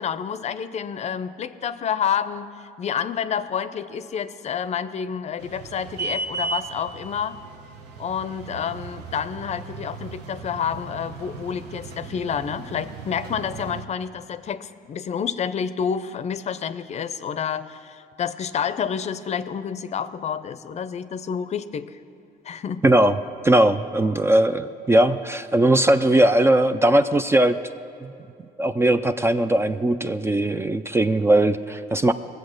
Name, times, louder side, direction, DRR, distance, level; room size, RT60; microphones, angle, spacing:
voice 1, 0.0-2.5 2.8-7.4 8.0-22.0 22.4-22.8, left 7 dB, 40° left, 13 dB, 0.5 m, -29 dB
sound 1, 5.4-13.8, right 4 dB, 75° right, 1.2 m, -36 dB
voice 2, 22.8-23.2 23.4-27.6 28.0-28.1 28.6-32.1, right 1 dB, 15° right, 10 dB, 0.4 m, -19 dB
20.5 x 7.9 x 6.4 m, 2.6 s
cardioid pair, 110°, 17 cm